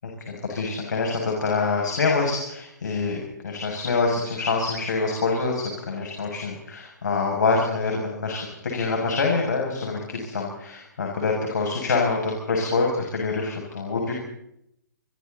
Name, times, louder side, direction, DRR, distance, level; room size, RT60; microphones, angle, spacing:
voice 1, 0.0-14.1, left 4 dB, 70° left, 0 dB, 7.2 m, -26 dB
30.0 x 24.5 x 4.2 m, 0.76 s
hypercardioid pair, 135°, 10 cm